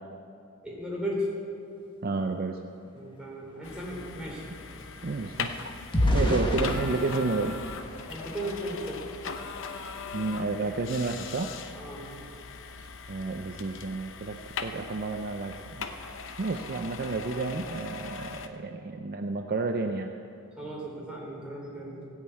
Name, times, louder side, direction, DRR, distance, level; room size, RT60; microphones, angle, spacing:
voice 1, 0.6-1.3 2.9-4.4 6.2-6.3 8.1-9.0 11.8-12.1 17.0-17.1 20.6-22.0, equal, 5° right, -5 dB, 3.7 m, -36 dB
voice 2, 2.0-2.6 5.0-5.5 6.1-7.6 10.1-11.5 13.1-15.9 16.4-20.1, right 3 dB, 45° right, 5 dB, 0.5 m, -31 dB
sound 1, 3.0-3.1 3.4-8.8 9.4-9.6 9.9-10.2, left 1 dB, 25° left, 1.4 m, -32 dB
sound 2, 3.6-18.5, left 5 dB, 60° left, 0.7 m, -40 dB
17.5 x 6.4 x 8.5 m, 2.5 s
head